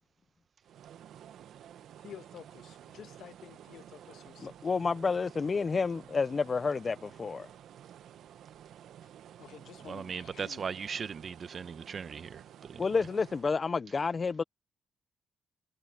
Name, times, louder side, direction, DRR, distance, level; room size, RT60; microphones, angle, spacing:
sound 1, 0.6-13.6, right 10 dB, 75° right, 1.1 m, -52 dB
voice 1, 2.0-4.6 9.0-9.1 9.4-10.6, left 10 dB, 70° left, 1.5 m, -51 dB
voice 2, 4.4-7.5 12.8-14.4, left 4 dB, 35° left, 0.5 m, -30 dB
voice 3, 9.8-13.0, right 6 dB, 45° right, 0.9 m, -39 dB
cardioid pair, 90°, 0 cm